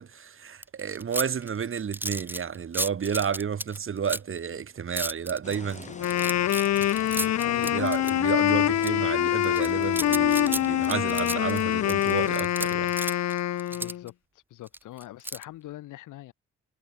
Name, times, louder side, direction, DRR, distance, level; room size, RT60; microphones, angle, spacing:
voice 1, 0.0-6.0 6.8-13.2, right 7 dB, 45° right, 2.3 m, -31 dB
sound 1, 0.6-4.4 5.0-8.3 8.8-8.9 9.4-14.1 14.7-15.4, right 1 dB, 5° right, 0.7 m, -33 dB
sound 2, 5.4-12.4, left 4 dB, 25° left, 2.4 m, -44 dB
Wind instrument woodwind instrument, 5.9-14.0, left 12 dB, 60° left, 0.9 m, -25 dB
voice 2, 7.4-7.8 13.7-14.1 14.5-16.3, left 15 dB, 90° left, 4.9 m, -42 dB
cardioid pair, 90°, 30 cm